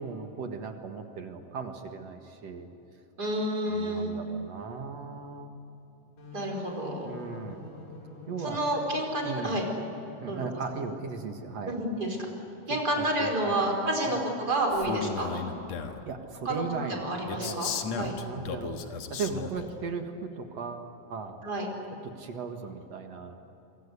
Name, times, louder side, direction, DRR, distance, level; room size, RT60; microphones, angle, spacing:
voice 1, 0.0-2.7 3.6-5.5 7.0-7.7 8.3-8.6 9.2-9.6 10.2-11.7 13.0-13.6 14.1-14.2 15.8-21.4 22.0-23.4, right 5 dB, 55° right, 5 dB, 2.6 m, -37 dB
voice 2, 3.2-4.2 6.3-7.1 8.4-9.6 10.3-10.5 11.7-12.2 12.7-15.5 16.5-18.1 21.4-21.7, right 1 dB, 30° right, 1 dB, 5.2 m, -30 dB
sound 1, 6.2-11.7, left 3 dB, 90° left, 7.9 m, -47 dB
Male speech man speaking, 14.7-16.1 17.3-19.7, left 6 dB, 60° left, 2.4 m, -35 dB
26.5 x 24.5 x 8.4 m, 3.0 s
omnidirectional pair, 3.8 m